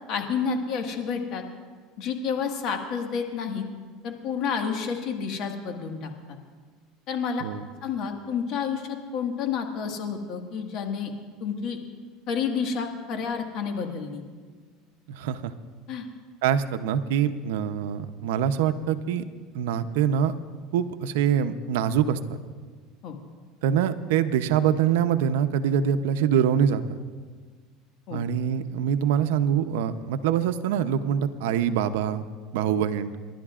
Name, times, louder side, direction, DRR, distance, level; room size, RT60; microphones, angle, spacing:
voice 1, 0.1-1.4 2.0-3.7 4.0-6.1 7.1-7.4 7.8-11.1 11.4-11.8 12.3-14.2 15.9-16.1 23.0-23.1 28.1-28.2, left 6 dB, 55° left, 3 dB, 1.7 m, -29 dB
voice 2, 15.1-15.5 16.4-19.2 19.5-20.4 20.7-22.2 23.6-27.0 28.1-32.3 32.5-33.1, right 8 dB, 85° right, 11 dB, 0.7 m, -24 dB
30.0 x 11.5 x 2.5 m, 1.5 s
supercardioid pair, 130°, 0 cm